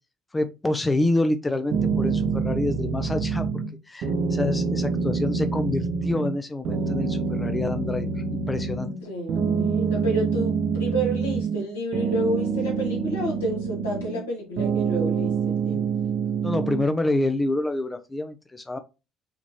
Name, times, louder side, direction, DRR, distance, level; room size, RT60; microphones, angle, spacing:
voice 1, 0.3-8.9 16.4-18.8, left 2 dB, 15° left, 0.5 m, -27 dB
sound 1, 1.7-3.7 4.0-6.4 6.6-9.0 9.3-11.6 11.9-14.3 14.6-16.9, right 5 dB, 55° right, 0.8 m, -26 dB
voice 2, 9.0-15.8, right 1 dB, 75° left, 1.8 m, -30 dB
5.7 x 3.1 x 2.9 m
figure-of-eight pair, 55°, 0 cm